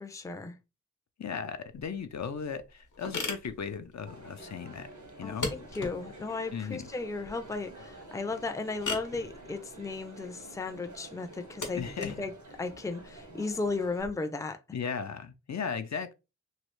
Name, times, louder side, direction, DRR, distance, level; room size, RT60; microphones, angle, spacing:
voice 1, 0.0-0.6 5.2-12.3 12.6-14.6, left 3 dB, 10° left, 0.4 m, -35 dB
voice 2, 1.2-4.9 5.2-5.5 6.5-6.9 11.7-12.1 14.7-16.1, left 6 dB, 65° left, 0.5 m, -36 dB
sound 1, 1.7-14.1, left 3 dB, 90° left, 0.9 m, -41 dB
Crowd, 4.1-14.0, right 2 dB, 75° right, 1.2 m, -49 dB
3.2 x 2.3 x 3.1 m
wide cardioid pair, 70°, 29 cm